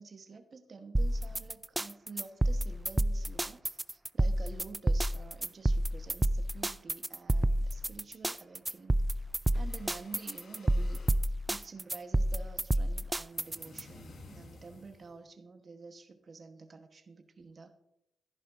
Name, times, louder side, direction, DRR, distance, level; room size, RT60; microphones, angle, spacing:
voice 1, 0.0-9.0 9.5-11.0 11.5-17.7, right 4 dB, 50° right, 7 dB, 1.1 m, -49 dB
sound 1, 0.9-13.8, right 1 dB, 15° right, 0.4 m, -29 dB
sound 2, 4.1-5.3 5.6-6.7 7.0-7.1 7.5-7.6 7.9-8.0 8.4-11.0, left 1 dB, 35° left, 1.4 m, -58 dB
sound 3, 9.4-11.2 13.3-15.2, left 2 dB, 70° left, 1.7 m, -54 dB
12.5 x 11.0 x 2.6 m, 0.80 s
supercardioid pair, 50°, 0 cm